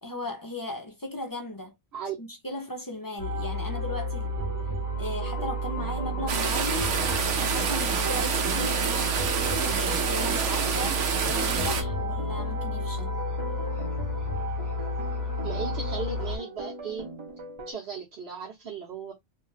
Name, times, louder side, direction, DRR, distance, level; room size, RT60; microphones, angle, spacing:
voice 1, 0.0-1.7 2.2-4.3 5.0-6.9 7.4-13.1, left 1 dB, 35° left, 0.3 m, -37 dB
sound 1, 3.2-16.4, right 1 dB, 20° left, 0.8 m, -31 dB
sound 2, 5.2-17.7, right 1 dB, 35° right, 0.5 m, -41 dB
sound 3, 6.3-11.8, right 5 dB, 90° right, 1.0 m, -27 dB
voice 2, 15.4-17.1 17.7-19.1, right 5 dB, 65° right, 1.1 m, -36 dB
2.6 x 2.2 x 3.1 m
omnidirectional pair, 1.2 m